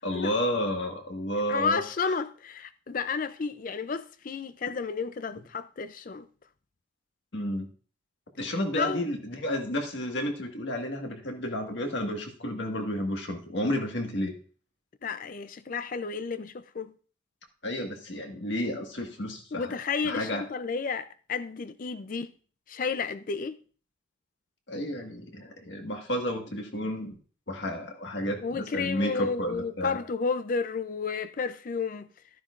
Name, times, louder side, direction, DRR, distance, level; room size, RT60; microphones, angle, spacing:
voice 1, 0.0-2.1 7.3-7.7 8.4-14.4 17.6-19.7 20.0-20.4 24.7-27.2 27.5-30.0, equal, 60° left, 1.6 m, -31 dB
voice 2, 1.5-6.3 8.8-9.1 15.0-16.9 19.5-22.3 22.7-23.6 28.4-32.1, left 5 dB, 40° left, 0.4 m, -32 dB
12.5 x 10.0 x 2.5 m
head